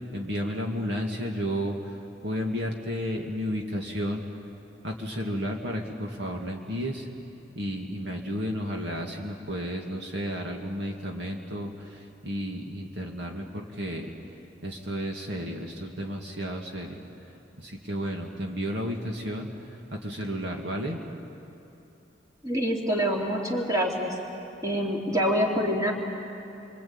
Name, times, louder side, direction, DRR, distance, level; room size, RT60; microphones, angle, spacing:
voice 1, 0.1-2.0 2.2-4.2 4.8-7.1 7.5-14.1 14.6-17.0 17.6-21.0, equal, 60° right, 0 dB, 2.3 m, -32 dB
voice 2, 22.4-24.2 24.6-25.9, equal, 20° right, -1 dB, 2.9 m, -26 dB
27.0 x 24.5 x 8.9 m, 3.0 s
head